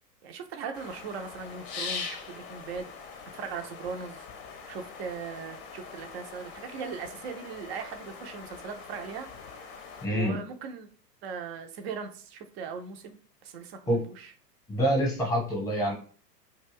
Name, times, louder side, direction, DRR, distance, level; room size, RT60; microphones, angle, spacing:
voice 1, 0.2-2.9 3.3-4.2 4.7-9.5 10.1-10.9 11.2-13.2 13.4-14.3, right 6 dB, 40° right, 6 dB, 0.5 m, -39 dB
sound 1, 0.7-10.1, left 5 dB, 40° left, 0.6 m, -42 dB
voice 2, 10.0-10.4 13.9-14.0 14.7-15.9, equal, 5° left, -1 dB, 0.9 m, -26 dB
2.3 x 2.2 x 3.4 m, 0.41 s
figure-of-eight pair, 95°, 49 cm